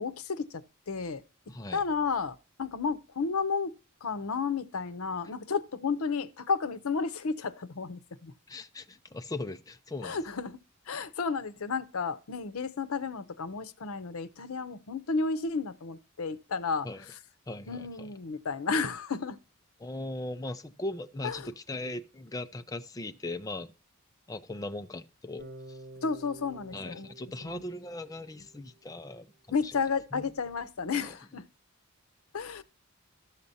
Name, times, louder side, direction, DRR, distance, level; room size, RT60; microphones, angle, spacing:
voice 1, 0.0-8.3 10.0-10.6 10.9-17.2 17.7-19.4 21.2-21.5 26.0-27.1 27.4-27.6 29.5-31.5 32.3-32.6, left 5 dB, 90° left, 0.7 m, -32 dB
voice 2, 1.5-1.8 8.5-10.2 16.8-17.0 17.5-18.1 19.8-23.7 24.3-25.8 26.7-29.3 29.6-29.7 30.1-30.2 30.9-31.1, left 2 dB, 15° left, 0.4 m, -39 dB
Bass guitar, 25.4-29.4, right 1 dB, 50° right, 2.7 m, -50 dB
13.0 x 6.7 x 2.7 m
head